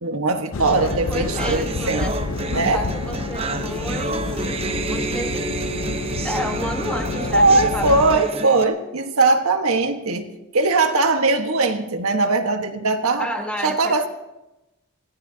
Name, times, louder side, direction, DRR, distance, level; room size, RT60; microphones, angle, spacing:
voice 1, 0.0-2.1 2.5-2.8 7.3-10.3 10.5-13.3 13.6-14.1, right 3 dB, 80° right, 5 dB, 1.5 m, -20 dB
sound 1, 0.5-8.2, left 3 dB, 70° left, 0.7 m, -29 dB
sound 2, 0.6-8.6, right 2 dB, 25° right, 0.9 m, -29 dB
voice 2, 1.1-2.1 2.4-4.6 4.9-5.5 6.2-8.4 13.2-14.1, equal, 5° left, 3 dB, 1.4 m, -31 dB
26.0 x 17.5 x 2.9 m, 0.96 s
head